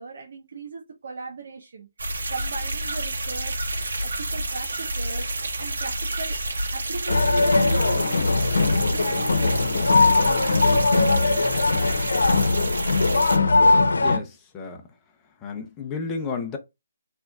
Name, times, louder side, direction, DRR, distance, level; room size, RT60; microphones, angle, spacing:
voice 1, 0.0-1.9 2.3-3.6 4.0-5.3 5.6-6.4 6.7-8.3 8.8-11.5, right 4 dB, 55° right, 1.2 m, -37 dB
sound 1, 2.0-13.4, right 1 dB, 75° right, 1.6 m, -29 dB
sound 2, 7.1-14.2, left 3 dB, 85° left, 0.9 m, -20 dB
voice 2, 14.0-14.8 15.4-16.6, left 5 dB, 15° left, 0.9 m, -32 dB
5.7 x 3.5 x 2.4 m
hypercardioid pair, 165°, 0 cm